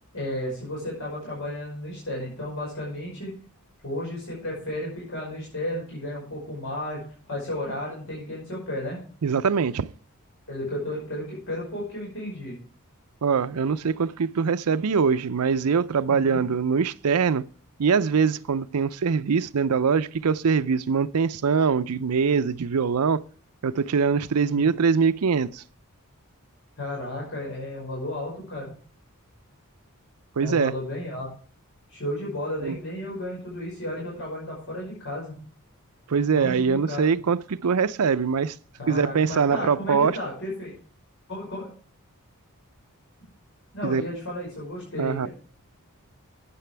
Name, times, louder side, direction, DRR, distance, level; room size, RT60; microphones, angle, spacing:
voice 1, 0.1-3.3 3.8-7.0 7.3-9.0 10.5-12.6 16.1-16.4 24.5-24.7 26.8-28.7 30.4-31.3 31.9-35.3 36.3-37.2 38.8-40.7 41.3-41.7 43.7-45.3, left 1 dB, 60° left, 5.6 m, -33 dB
voice 2, 9.2-9.9 13.2-17.4 17.8-23.2 23.6-25.6 30.4-30.7 32.6-32.8 36.1-38.6 38.9-40.2 43.8-44.0 45.0-45.3, right 5 dB, 85° right, 0.5 m, -23 dB
12.5 x 9.1 x 3.4 m
head